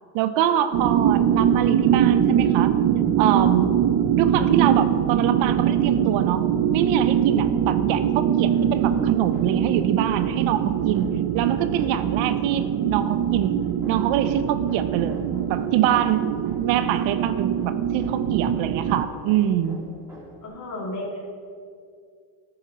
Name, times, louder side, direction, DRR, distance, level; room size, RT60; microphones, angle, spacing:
voice 1, 0.1-2.8 3.2-3.7 4.2-13.6 13.9-16.3 16.6-19.8, right 10 dB, 85° right, 11 dB, 0.7 m, -25 dB
sound 1, 0.7-19.0, right 9 dB, 50° right, 0.6 m, -22 dB
Hammer, 8.4-20.5, right 1 dB, 5° right, 2.4 m, -46 dB
voice 2, 20.4-21.2, left 1 dB, 40° left, -3 dB, 2.7 m, -33 dB
11.5 x 7.0 x 4.2 m, 2.3 s
cardioid pair, 120°, 46 cm